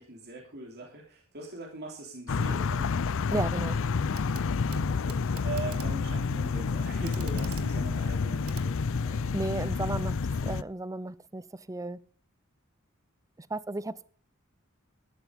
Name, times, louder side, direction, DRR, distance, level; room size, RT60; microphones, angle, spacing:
voice 1, 0.0-2.9 4.9-8.7, right 2 dB, 50° right, 3.2 m, -41 dB
sound 1, 2.3-10.6, left 4 dB, 65° left, 0.5 m, -29 dB
voice 2, 3.3-3.8 9.1-10.2 10.4-12.0 13.4-14.1, right 2 dB, 15° right, 0.6 m, -34 dB
Clock, 4.1-4.5 4.7-9.4 10.6-10.7, right 6 dB, 80° right, 1.6 m, -49 dB
13.0 x 11.5 x 5.2 m
head